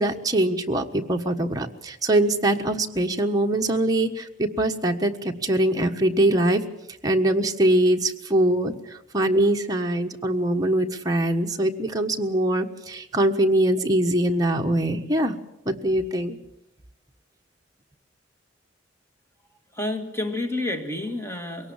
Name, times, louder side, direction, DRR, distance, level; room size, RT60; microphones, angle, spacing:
voice 1, 0.0-6.6 7.0-8.7 9.1-15.3 15.6-16.4, right 1 dB, 20° right, 3 dB, 1.4 m, -22 dB
voice 2, 19.7-21.7, left 2 dB, 15° left, 5 dB, 2.1 m, -29 dB
22.5 x 18.0 x 7.3 m, 0.84 s
head